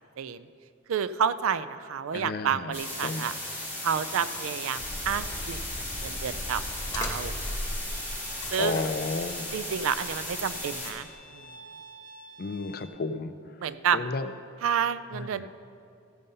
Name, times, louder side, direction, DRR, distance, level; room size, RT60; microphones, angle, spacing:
voice 1, 0.2-0.5 0.9-3.3 3.8-5.6 6.0-6.6 6.9-7.4 8.5-8.8 9.5-11.5 13.6-14.0 14.6-15.5, right 7 dB, 85° right, 14 dB, 0.4 m, -29 dB
voice 2, 2.1-2.7 3.0-3.3 8.6-9.6 12.4-13.3 13.9-14.3 15.1-15.5, left 3 dB, 45° left, 11 dB, 0.4 m, -32 dB
sound 1, 2.7-10.9, left 1 dB, 10° right, 2.1 m, -36 dB
sound 2, 4.8-11.1, left 1 dB, 15° left, 1.1 m, -38 dB
Bowed string instrument, 7.8-12.9, right 1 dB, 70° right, 0.9 m, -50 dB
15.0 x 5.5 x 5.4 m, 2.4 s
head